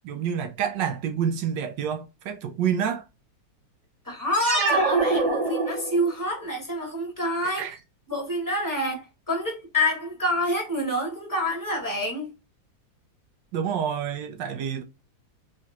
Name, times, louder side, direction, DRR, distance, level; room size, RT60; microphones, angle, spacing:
voice 1, 0.0-3.0 7.4-7.8 13.5-14.8, right 8 dB, 70° right, 1.2 m, -28 dB
voice 2, 4.0-7.7 8.1-12.3, equal, 10° left, 1.4 m, -27 dB
sound 1, 4.3-6.2, right 3 dB, 45° right, 0.4 m, -24 dB
3.6 x 3.3 x 2.9 m
omnidirectional pair, 2.1 m